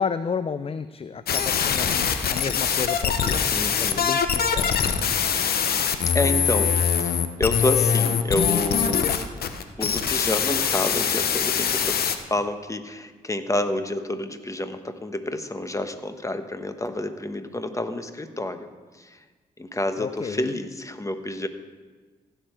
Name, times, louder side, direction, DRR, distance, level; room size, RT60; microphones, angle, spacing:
voice 1, 0.0-4.9 20.0-20.6, left 6 dB, 35° left, 13 dB, 0.5 m, -32 dB
sound 1, 1.3-12.2, left 7 dB, 70° left, 0.9 m, -23 dB
voice 2, 3.5-4.0 6.1-9.1 9.8-18.7 18.9-19.2 19.6-21.5, left 1 dB, 20° left, 8 dB, 1.2 m, -29 dB
15.5 x 6.9 x 4.5 m, 1.4 s
supercardioid pair, 45°, 17 cm